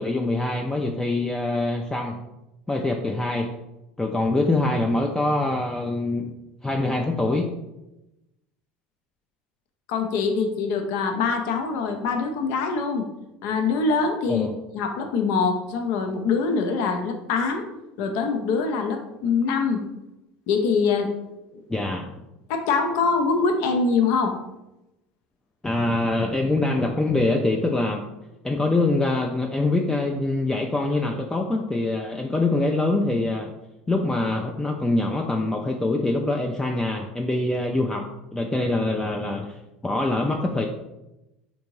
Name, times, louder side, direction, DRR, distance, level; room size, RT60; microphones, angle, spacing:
voice 1, 0.0-2.2 2.7-3.5 4.0-6.3 6.6-7.5 14.3-14.5 21.7-22.2 25.6-28.0 28.4-33.5 33.9-40.7, left 2 dB, 10° left, 1 dB, 0.4 m, -24 dB
voice 2, 9.9-13.0 13.4-14.5 14.7-17.7 18.0-19.8 20.5-21.1 21.5-21.6 22.5-24.3, left 4 dB, 65° left, 5 dB, 0.5 m, -24 dB
3.5 x 2.6 x 3.0 m, 0.94 s
hypercardioid pair, 75°, 5 cm